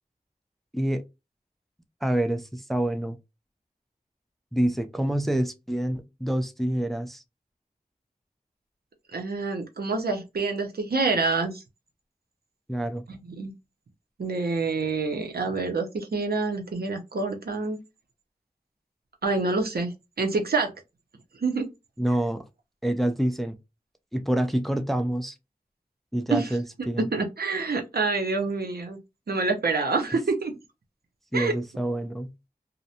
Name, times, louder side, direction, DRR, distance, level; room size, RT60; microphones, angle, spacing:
voice 1, 2.0-3.2 4.5-7.2 12.7-13.0 22.0-22.4 22.8-23.6 24.1-25.3 26.1-27.1 31.3-32.3, right 1 dB, ahead, 0.4 m, -27 dB
voice 2, 9.1-11.6 13.1-13.5 14.2-17.8 19.2-20.7 21.4-21.7 26.3-26.5 27.1-29.0 29.3-30.6 31.3-31.5, right 3 dB, 85° right, 0.7 m, -27 dB
2.5 x 2.1 x 2.7 m
wide cardioid pair, 60°, 16 cm